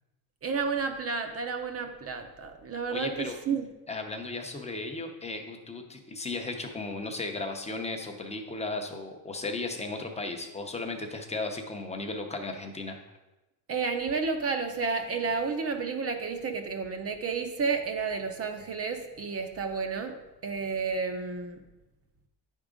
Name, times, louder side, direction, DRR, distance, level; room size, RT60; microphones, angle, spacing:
voice 1, 0.4-3.7 13.7-20.2 20.4-21.6, right 5 dB, 35° right, 6 dB, 0.5 m, -31 dB
voice 2, 2.9-3.4 3.9-13.0, left 3 dB, 15° left, 4 dB, 0.6 m, -35 dB
9.3 x 3.7 x 5.1 m, 1.0 s
cardioid pair, 155°, 45 cm